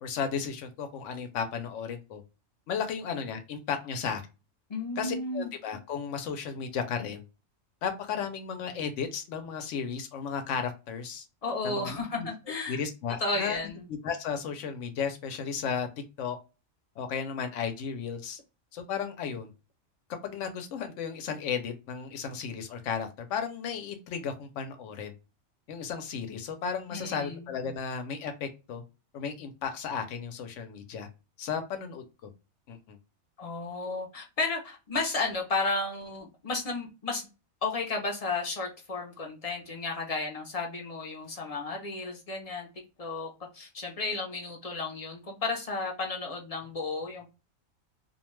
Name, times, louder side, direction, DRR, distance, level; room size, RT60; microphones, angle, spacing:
voice 1, 0.0-2.2 2.7-4.2 5.0-7.2 7.8-11.3 11.6-12.3 12.7-15.9 16.2-16.4 17.0-18.4 18.7-19.5 20.2-25.1 25.7-28.8 29.1-31.1 31.4-32.3 32.7-33.0, left 6 dB, 75° left, 7 dB, 0.9 m, -34 dB
voice 2, 4.7-5.5 11.4-12.8 13.2-13.9 26.9-27.5 33.4-37.2 37.6-42.7 43.0-47.3, left 3 dB, 45° left, 0 dB, 0.5 m, -33 dB
2.4 x 2.2 x 3.0 m, 0.29 s
omnidirectional pair, 1.3 m